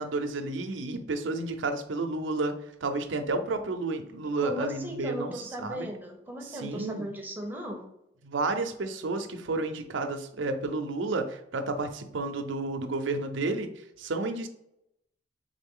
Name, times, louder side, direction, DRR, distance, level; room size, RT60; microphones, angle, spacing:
voice 1, 0.0-2.5 2.8-5.3 5.6-5.9 6.5-7.1 8.2-13.7 14.0-14.5, right 3 dB, 80° right, 7 dB, 0.6 m, -31 dB
voice 2, 4.4-7.9, equal, 10° right, 1 dB, 0.8 m, -37 dB
3.9 x 3.7 x 3.7 m, 0.80 s
head